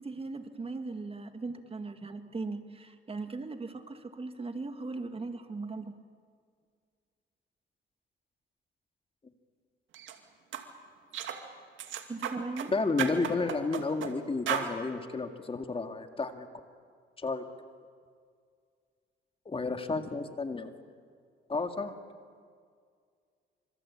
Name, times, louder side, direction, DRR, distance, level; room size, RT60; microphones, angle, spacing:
voice 1, 0.0-5.9 12.1-12.7, right 3 dB, 30° right, 7 dB, 2.1 m, -38 dB
sound 1, 9.9-10.1 10.5-10.7 11.1-11.4 11.8-12.7 13.0-14.1 14.5-14.7, right 10 dB, 80° right, 2.5 m, -34 dB
voice 2, 12.7-16.5 17.2-17.4 19.5-20.7 21.5-21.9, left 3 dB, 25° left, 6 dB, 2.1 m, -31 dB
26.5 x 25.5 x 8.7 m, 2.1 s
cardioid pair, 90°, 20 cm